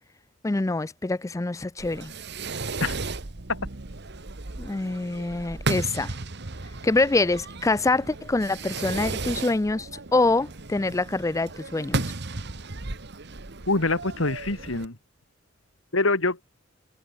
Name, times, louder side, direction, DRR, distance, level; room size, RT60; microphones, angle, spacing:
voice 1, 0.4-2.1 4.6-6.1 6.8-12.0, left 2 dB, 15° left, 0.4 m, -25 dB
Fireworks, 1.8-14.9, right 3 dB, 55° right, 1.5 m, -35 dB
voice 2, 13.7-15.0 15.9-16.4, left 2 dB, 80° left, 2.7 m, -25 dB
head